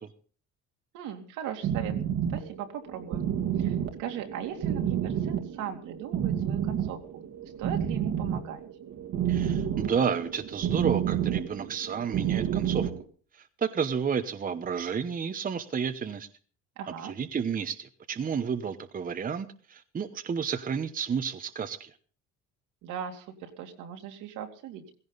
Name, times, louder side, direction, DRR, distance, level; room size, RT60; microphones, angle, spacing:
voice 1, 0.9-2.0 2.3-3.3 3.6-8.6 16.8-17.1 22.8-24.8, right 9 dB, 75° right, 4 dB, 2.7 m, -38 dB
sound 1, 1.6-13.0, right 9 dB, 55° right, 1.9 m, -30 dB
voice 2, 9.3-12.9 13.6-16.3 17.0-21.9, right 6 dB, 25° right, 9 dB, 1.0 m, -31 dB
16.5 x 16.0 x 4.1 m, 0.42 s
cardioid pair, 110°, 31 cm